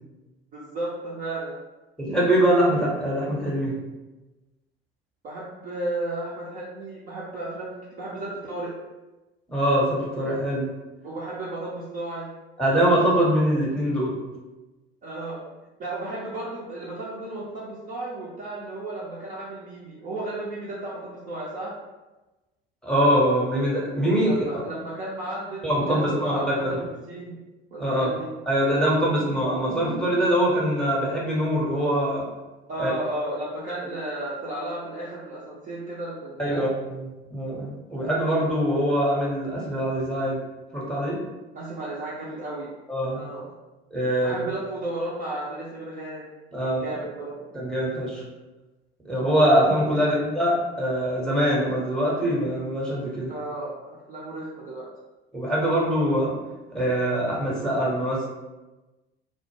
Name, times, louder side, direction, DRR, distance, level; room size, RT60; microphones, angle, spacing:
voice 1, 0.5-1.5 5.2-8.7 11.0-12.3 15.0-15.4 15.8-21.7 24.2-27.4 27.7-28.3 32.7-36.7 41.5-42.7 43.1-43.5 44.2-46.2 46.6-47.5 53.3-53.7 54.1-54.9, right 2 dB, 25° right, -6 dB, 0.5 m, -34 dB
voice 2, 2.0-3.7 9.5-10.7 12.6-14.2 22.8-24.4 25.6-26.8 27.8-28.1 28.5-32.2 32.8-32.9 36.4-40.4 40.7-41.2 42.9-43.2 43.9-44.4 46.5-46.8 47.5-48.2 49.0-53.3 55.3-56.3 56.7-58.2, equal, ahead, -5 dB, 0.8 m, -23 dB
2.1 x 2.0 x 3.0 m, 1.1 s
figure-of-eight pair, 70°, 31 cm